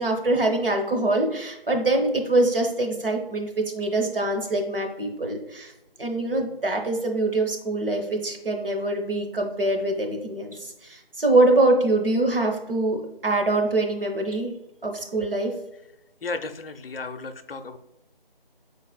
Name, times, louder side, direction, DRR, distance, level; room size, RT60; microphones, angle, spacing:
voice 1, 0.0-5.7 6.0-14.5 14.8-15.5, right 2 dB, 65° right, 2 dB, 0.9 m, -24 dB
voice 2, 16.2-17.8, left 3 dB, 70° left, 10 dB, 0.5 m, -34 dB
5.5 x 4.0 x 2.3 m, 0.90 s
figure-of-eight pair, 170°, 30 cm